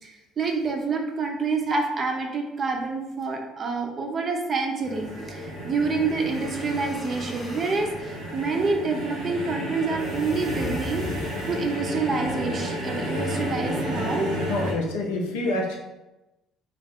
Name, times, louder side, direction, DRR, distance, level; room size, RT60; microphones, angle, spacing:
voice 1, 0.0-11.1 11.5-14.3, right 4 dB, 45° right, 2 dB, 0.5 m, -27 dB
sound 1, 4.8-14.7, equal, 80° right, 0.7 m, -32 dB
sound 2, 6.1-7.9 10.0-11.9, left 1 dB, 25° left, 0.7 m, -39 dB
voice 2, 14.5-15.8, left 2 dB, 75° left, 0 dB, 0.5 m, -27 dB
2.4 x 2.0 x 3.5 m, 1.0 s
hypercardioid pair, 55°, 0 cm